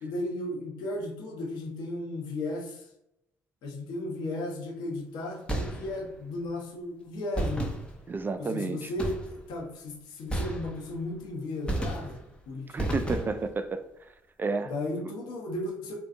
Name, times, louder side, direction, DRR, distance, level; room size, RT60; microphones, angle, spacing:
voice 1, 0.0-2.8 3.6-7.7 8.4-12.2 12.5-13.1 14.6-16.0, left 1 dB, 70° left, 0.7 m, -35 dB
sound 1, 5.5-6.2 7.3-8.3 9.0-9.6 10.3-11.1 11.7-12.4 12.8-13.6, right 1 dB, 15° left, 0.7 m, -33 dB
voice 2, 8.1-8.9 12.7-13.8 14.4-14.7 15.0-15.1, right 4 dB, 25° right, 0.3 m, -31 dB
2.6 x 2.2 x 2.5 m
hypercardioid pair, 55°, 7 cm